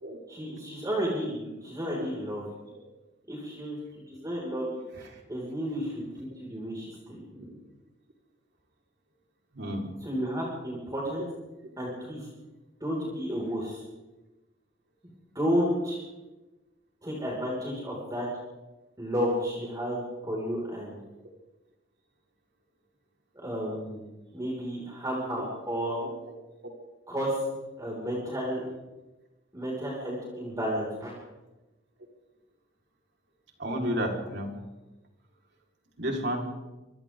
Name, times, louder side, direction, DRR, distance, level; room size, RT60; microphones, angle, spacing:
voice 1, 0.3-2.4 3.3-3.8 4.1-4.7 5.0-7.5 10.0-11.3 11.8-12.3 12.8-13.8 15.3-16.0 17.0-18.3 19.0-21.0 23.4-24.0 24.3-26.0 27.1-27.4 27.8-28.6 29.5-31.1, equal, 20° right, -4 dB, 5.6 m, -32 dB
voice 2, 9.5-9.9 25.4-25.5 26.3-26.4 33.6-34.5 36.0-36.5, equal, 65° right, 0 dB, 4.6 m, -31 dB
28.0 x 24.5 x 3.9 m, 1.1 s
head